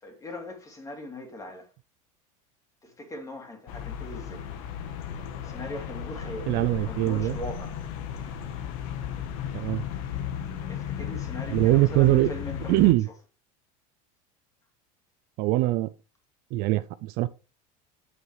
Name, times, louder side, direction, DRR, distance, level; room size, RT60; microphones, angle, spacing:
voice 1, 0.0-1.7 2.8-4.4 5.4-7.8 10.7-12.9, left 2 dB, 20° left, 2.6 m, -40 dB
sound 1, 3.7-12.9, left 8 dB, 75° left, 1.4 m, -35 dB
voice 2, 6.5-7.4 9.5-9.8 11.5-12.3 12.7-13.1 15.4-15.9 16.5-17.3, right 18 dB, 55° right, 0.5 m, -22 dB
8.8 x 6.8 x 3.3 m
supercardioid pair, 125°, 18 cm